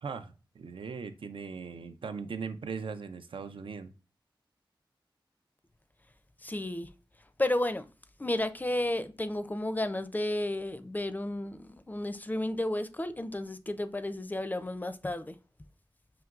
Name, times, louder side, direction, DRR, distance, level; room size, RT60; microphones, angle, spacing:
voice 1, 0.0-3.9, right 5 dB, 85° right, 0.4 m, -39 dB
voice 2, 6.4-6.9 7.2-7.9 8.2-15.4, left 1 dB, 20° left, 0.4 m, -32 dB
5.9 x 2.9 x 2.4 m
wide cardioid pair, 65°, 9 cm